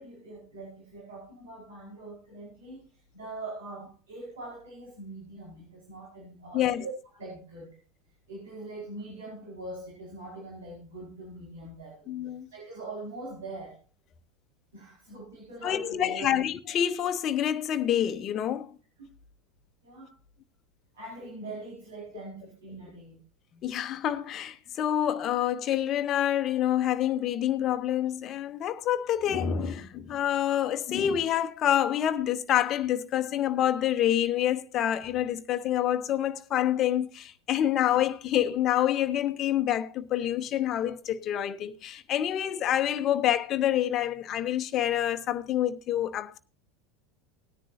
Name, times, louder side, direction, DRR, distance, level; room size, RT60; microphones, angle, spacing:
voice 1, 0.0-7.8 8.3-12.1 12.5-13.8 14.7-16.4 19.0-19.1 19.8-20.2 20.9-23.2 24.6-24.7, right 2 dB, 70° right, 4.8 m, -42 dB
voice 2, 12.1-12.5 15.6-18.8 23.6-46.4, left 11 dB, 40° left, 1.0 m, -27 dB
18.5 x 10.0 x 2.8 m
figure-of-eight pair, 80°, 0 cm